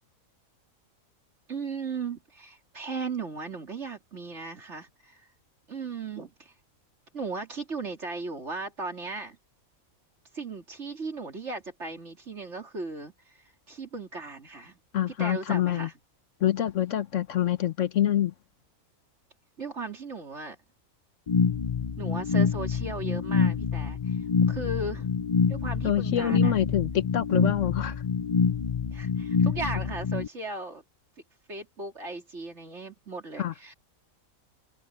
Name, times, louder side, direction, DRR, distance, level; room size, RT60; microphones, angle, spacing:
voice 1, 1.5-5.3 5.7-6.5 7.1-9.4 10.3-13.4 13.7-14.8 15.2-15.9 19.6-20.6 22.0-25.2 25.5-26.6 28.9-30.8 31.5-33.7, right 3 dB, 55° right, 3.5 m, -37 dB
voice 2, 14.9-15.9 16.4-18.3 25.8-27.9 33.4-33.5, left 11 dB, 65° left, 1.1 m, -26 dB
sound 1, 21.3-30.3, left 5 dB, 40° left, 0.4 m, -26 dB
omnidirectional pair, 1.4 m